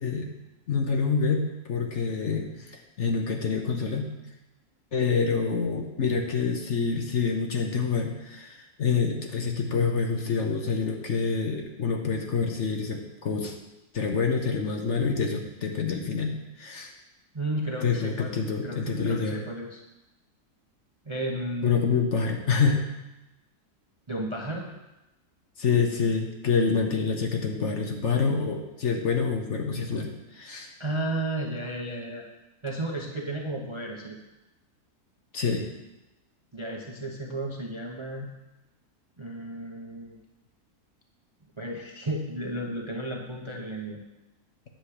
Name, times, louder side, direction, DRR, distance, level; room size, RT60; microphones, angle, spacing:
voice 1, 0.7-4.1 4.9-13.5 13.9-16.9 17.8-19.4 21.6-22.8 25.6-30.7 35.3-35.7, left 5 dB, 55° left, 3 dB, 1.1 m, -27 dB
voice 2, 17.3-19.8 21.1-21.9 24.1-24.7 30.8-32.2 32.6-34.2 36.5-38.3 39.2-40.2 41.6-44.0, right 1 dB, 25° right, 0 dB, 0.7 m, -33 dB
9.2 x 7.2 x 4.9 m, 0.96 s
omnidirectional pair, 1.7 m